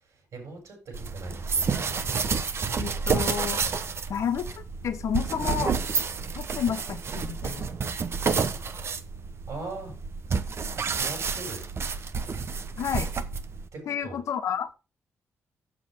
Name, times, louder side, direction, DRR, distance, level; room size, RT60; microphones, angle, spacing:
voice 1, 0.0-2.0 9.5-10.0 10.8-11.6 13.7-14.2, right 3 dB, 70° right, 1 dB, 5.6 m, -40 dB
sound 1, 0.9-13.7, right 5 dB, 50° right, 1.0 m, -30 dB
voice 2, 2.8-3.6 4.1-5.8 6.4-7.7 12.8-13.1 13.9-14.7, left 8 dB, 70° left, 8 dB, 1.4 m, -30 dB
7.6 x 6.7 x 6.2 m, 0.30 s
supercardioid pair, 60°, 5 cm